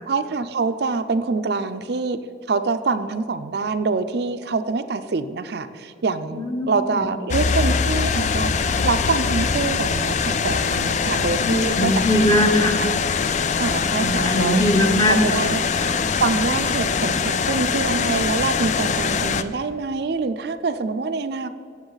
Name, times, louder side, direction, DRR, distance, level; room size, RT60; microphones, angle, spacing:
voice 1, 0.1-2.2 2.5-12.3 12.7-12.9 13.6-14.6 15.1-15.6 16.2-21.5, right 4 dB, 55° right, 9 dB, 0.4 m, -25 dB
voice 2, 6.3-7.1 11.3-12.8 13.9-16.0, left 1 dB, 20° left, 5 dB, 0.9 m, -21 dB
sound 1, 7.3-19.4, left 5 dB, 40° left, 0.3 m, -23 dB
17.0 x 7.2 x 4.0 m, 2.5 s
head